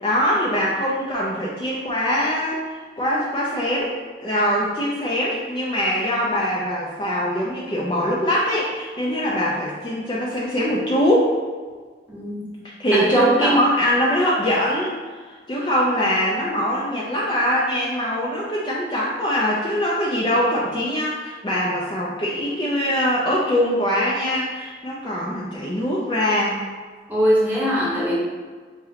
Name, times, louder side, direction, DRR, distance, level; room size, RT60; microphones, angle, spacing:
voice 1, 0.0-11.3 12.8-15.0 15.3-26.6, equal, 25° left, -5 dB, 0.4 m, -22 dB
voice 2, 13.1-13.6 27.1-28.2, equal, 10° right, -7 dB, 1.0 m, -21 dB
3.7 x 3.0 x 2.8 m, 1.5 s
head